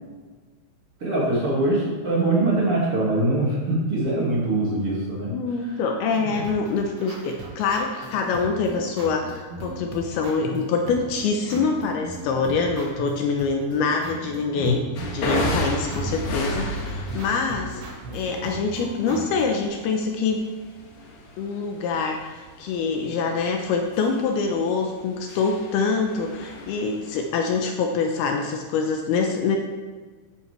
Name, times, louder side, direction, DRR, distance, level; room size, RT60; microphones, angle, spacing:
voice 1, 1.0-5.3 6.2-6.3 14.6-14.7, right 2 dB, 40° right, -6 dB, 2.5 m, -23 dB
voice 2, 5.3-17.8 18.1-20.4 21.4-29.6, left 4 dB, 80° left, 3 dB, 2.6 m, -25 dB
sound 1, 6.1-19.6, right 2 dB, 90° right, 4.0 m, -38 dB
sound 2, 15.0-27.5, left 1 dB, 60° left, 3.3 m, -32 dB
13.5 x 8.2 x 3.4 m, 1.4 s
omnidirectional pair, 4.9 m